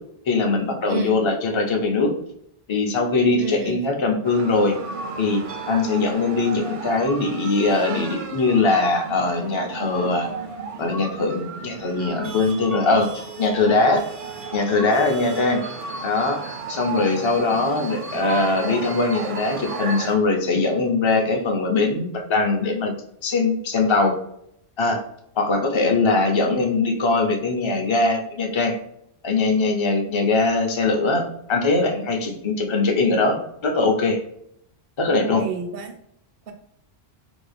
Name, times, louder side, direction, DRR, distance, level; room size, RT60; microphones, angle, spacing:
voice 1, 0.3-2.1 2.7-4.7 5.2-5.4 5.7-10.3 10.8-14.0 14.5-15.6 16.0-22.9 23.2-24.2 24.8-25.0 25.3-28.8 29.2-34.2 35.0-35.4, left 3 dB, 35° left, 2 dB, 0.5 m, -21 dB
voice 2, 3.4-3.8 26.2-26.4 35.2-36.0 36.5-36.6, right 5 dB, 70° right, 6 dB, 0.8 m, -30 dB
sound 1, 4.2-20.2, right 4 dB, 45° right, 0.4 m, -34 dB
3.5 x 2.3 x 3.3 m, 0.73 s
omnidirectional pair, 1.1 m